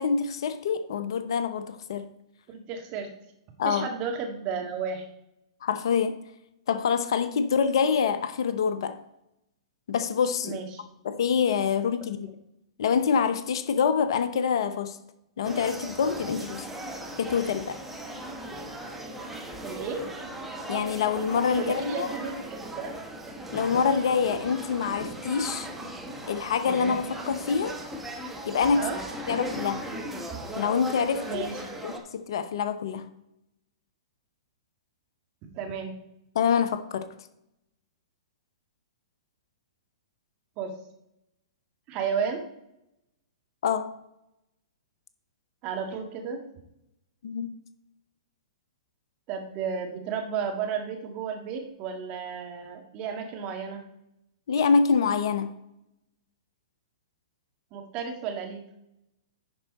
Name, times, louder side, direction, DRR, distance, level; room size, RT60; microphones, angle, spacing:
voice 1, 0.0-2.1 3.6-3.9 5.6-6.2 6.7-9.0 9.9-10.6 11.0-12.3 12.8-15.0 15.4-16.7 17.2-17.8 20.7-22.2 23.5-25.7 26.2-27.8 28.4-28.9 29.3-29.8 30.6-31.4 31.8-33.0 36.3-37.1 43.6-43.9 47.2-47.5 54.5-55.5, left 6 dB, 60° left, 0.7 m, -26 dB
voice 2, 2.5-3.1 3.6-5.1 10.4-10.9 19.6-20.0 21.6-22.9 28.8-29.0 31.3-31.7 35.6-35.9 40.6-40.7 41.9-42.4 45.6-46.4 49.3-53.8 57.7-58.6, right 6 dB, 35° right, 1.7 m, -33 dB
sound 1, 15.4-32.0, right 1 dB, 5° right, 1.3 m, -37 dB
10.5 x 4.6 x 4.0 m
hypercardioid pair, 115°, 3 cm